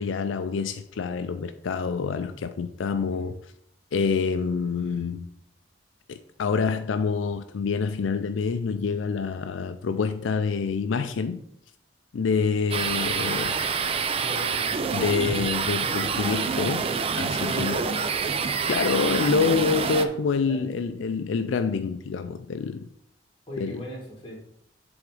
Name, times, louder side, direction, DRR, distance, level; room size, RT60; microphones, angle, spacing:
voice 1, 0.0-3.4 3.9-5.3 6.1-11.4 12.1-13.6 14.9-17.8 18.7-22.9 23.6-23.8, left 5 dB, 85° left, 0.4 m, -27 dB
sound 1, 12.7-20.1, right 5 dB, 30° right, 0.4 m, -27 dB
voice 2, 14.2-14.7 17.4-18.0 20.0-20.2 20.4-20.6 23.5-24.4, left 1 dB, 25° left, 2.0 m, -36 dB
7.7 x 3.6 x 4.8 m
head